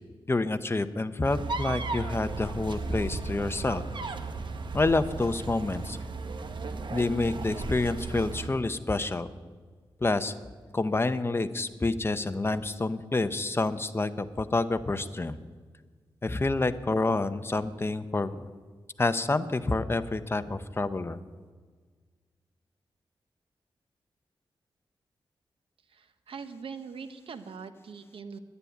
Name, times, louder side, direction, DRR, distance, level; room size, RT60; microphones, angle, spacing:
voice 1, 0.3-3.9 4.7-6.0 6.9-9.3 10.0-10.3 10.7-15.4 16.2-18.4 19.0-21.2, left 2 dB, 25° left, 11 dB, 0.8 m, -28 dB
sound 1, 1.2-8.5, right 3 dB, 60° right, 1.1 m, -35 dB
voice 2, 25.9-28.4, right 5 dB, 80° right, 10 dB, 1.0 m, -42 dB
11.0 x 9.8 x 9.2 m, 1.5 s
wide cardioid pair, 85°, 9 cm